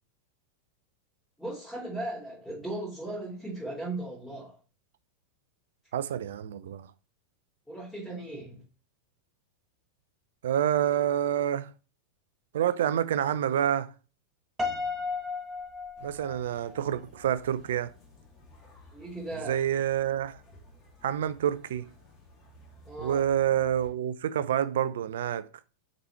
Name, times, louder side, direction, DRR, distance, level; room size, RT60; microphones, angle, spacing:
voice 1, 1.4-4.6 7.7-8.6 18.9-19.6 22.8-23.3, right 2 dB, 5° left, 3.0 m, -37 dB
voice 2, 5.9-6.9 10.4-11.7 12.5-13.9 16.0-17.9 19.5-20.4 21.0-21.9 23.0-25.5, right 10 dB, 60° right, 0.5 m, -28 dB
Piano, 14.6-16.8, left 4 dB, 15° right, 1.3 m, -34 dB
sound 1, 16.0-23.9, left 1 dB, 25° left, 2.6 m, -55 dB
6.8 x 4.0 x 4.4 m
figure-of-eight pair, 90°, 0 cm